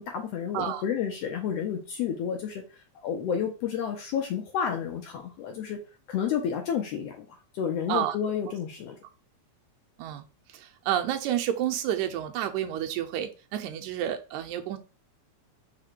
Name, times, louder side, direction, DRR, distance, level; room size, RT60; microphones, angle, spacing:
voice 1, 0.0-2.6 3.0-5.8 6.1-7.3 7.5-9.0, left 8 dB, 80° left, 2 dB, 1.5 m, -30 dB
voice 2, 10.5-14.8, right 11 dB, 85° right, 7 dB, 2.0 m, -30 dB
4.9 x 2.2 x 4.4 m, 0.32 s
omnidirectional pair, 3.3 m